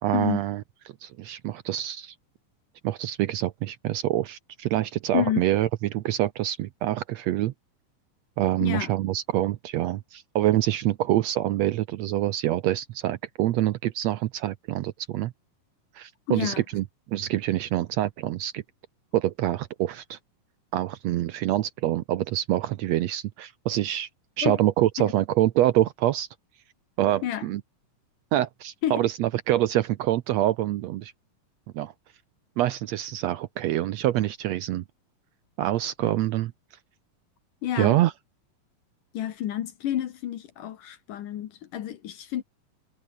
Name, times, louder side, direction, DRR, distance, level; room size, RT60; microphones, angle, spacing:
voice 1, 0.0-0.6 1.0-2.1 2.8-7.5 8.4-15.3 15.9-18.6 19.1-20.2 20.7-24.1 24.4-26.3 27.0-27.6 28.3-31.1 31.7-31.9 32.6-34.8 35.6-36.5 37.8-38.1, right 14 dB, 80° right, 1.5 m, -26 dB
voice 2, 16.3-16.6 24.4-24.6 25.0-25.1 27.2-27.4 28.8-29.0 37.6-38.0 39.1-42.4, left 11 dB, 70° left, 2.9 m, -29 dB
omnidirectional pair, 3.9 m